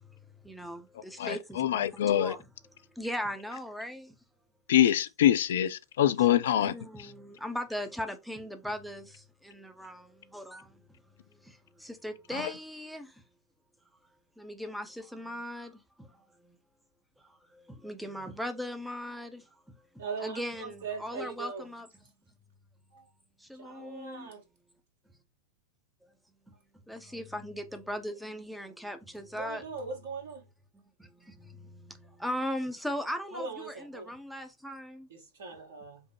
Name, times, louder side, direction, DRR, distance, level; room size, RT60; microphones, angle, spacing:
voice 1, 0.4-2.5 3.0-4.2 6.3-10.8 11.3-13.2 14.4-16.6 17.2-19.8 20.2-21.9 23.4-24.3 26.0-26.1 26.5-26.6 26.9-29.6 30.7-35.1, equal, ahead, 0.6 m, -39 dB
voice 2, 1.2-2.3 4.7-6.7 7.0-7.1 12.3-12.4, left 11 dB, 60° left, 0.4 m, -25 dB
voice 3, 20.0-21.7 22.9-23.1 23.6-24.4 29.3-30.5 33.3-34.2 35.1-36.0, right 4 dB, 60° right, 1.4 m, -40 dB
5.3 x 2.1 x 3.2 m
figure-of-eight pair, 90°, 0 cm